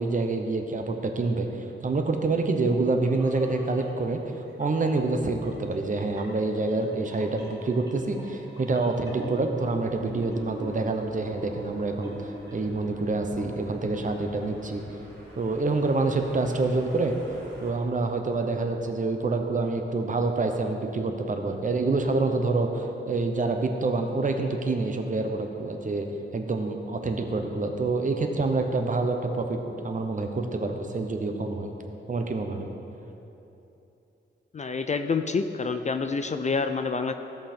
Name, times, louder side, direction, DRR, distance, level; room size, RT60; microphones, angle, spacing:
voice 1, 0.0-1.5 1.8-4.2 4.6-12.1 12.5-14.8 15.4-17.2 17.6-26.1 26.3-31.7 32.1-32.7, right 3 dB, 40° right, 4 dB, 0.8 m, -27 dB
sound 1, 3.0-3.8 4.5-4.9 5.4-12.9 13.2-13.6 13.9-14.1, right 1 dB, 20° right, 2.1 m, -44 dB
sound 2, 9.8-17.7, right 1 dB, 65° right, 2.4 m, -48 dB
voice 2, 34.5-37.1, left 4 dB, 35° left, 8 dB, 0.4 m, -27 dB
15.5 x 5.6 x 4.4 m, 2.9 s
wide cardioid pair, 140°, 20 cm